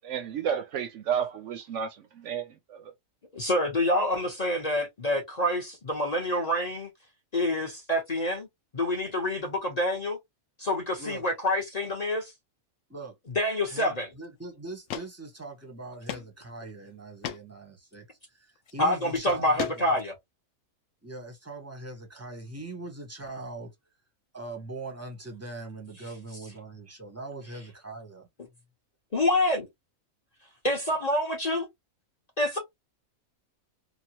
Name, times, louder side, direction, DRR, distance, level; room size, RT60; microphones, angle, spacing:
voice 1, 0.0-2.9, right 8 dB, 70° right, 0.8 m, -32 dB
voice 2, 3.3-6.9 7.3-8.5 8.7-10.2 10.6-12.3 13.3-14.1 18.8-20.1 29.1-29.7 30.6-31.7 32.4-32.6, left 1 dB, 35° left, 0.8 m, -27 dB
voice 3, 13.7-18.1 18.4-20.0 21.0-23.7 24.3-28.3, right 2 dB, 15° right, 0.8 m, -41 dB
sound 1, 14.2-14.3 14.9-15.1 15.4-15.5 16.1-16.3 16.7-16.8 17.2-17.4 18.6-18.7 19.3-20.1, left 10 dB, 70° left, 0.8 m, -35 dB
2.9 x 2.3 x 2.8 m
omnidirectional pair, 1.4 m